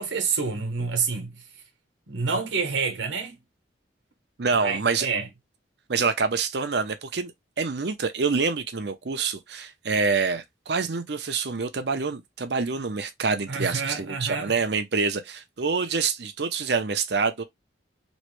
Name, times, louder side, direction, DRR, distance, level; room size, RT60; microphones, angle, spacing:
voice 1, 0.0-1.4 2.1-3.4 4.5-5.3 13.5-14.5, right 5 dB, 75° right, 1.1 m, -28 dB
voice 2, 4.4-5.1 5.9-7.3 7.6-17.4, right 4 dB, 60° right, 0.6 m, -26 dB
3.1 x 2.6 x 3.1 m
head